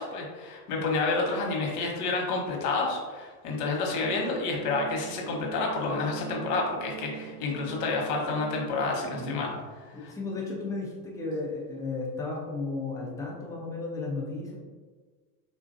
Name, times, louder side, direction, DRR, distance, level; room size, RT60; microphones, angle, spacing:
voice 1, 0.0-9.5 9.9-10.1, left 3 dB, 70° left, 0 dB, 1.0 m, -29 dB
sound 1, 4.0-9.4, right 10 dB, 55° right, 0.5 m, -42 dB
voice 2, 9.2-9.6 9.9-14.6, left 3 dB, 10° left, -4 dB, 0.4 m, -34 dB
3.6 x 2.4 x 2.5 m, 1.4 s
supercardioid pair, 125°, 46 cm